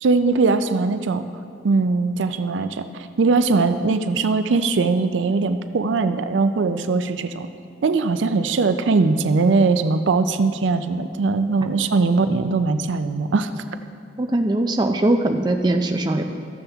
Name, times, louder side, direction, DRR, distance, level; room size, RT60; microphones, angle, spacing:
voice 1, 0.0-1.2 1.6-2.9 3.2-7.5 7.8-13.5, right 4 dB, 85° right, 10 dB, 0.4 m, -20 dB
voice 2, 14.2-16.2, right 1 dB, 25° right, 4 dB, 0.4 m, -20 dB
14.0 x 7.0 x 3.4 m, 2.4 s
head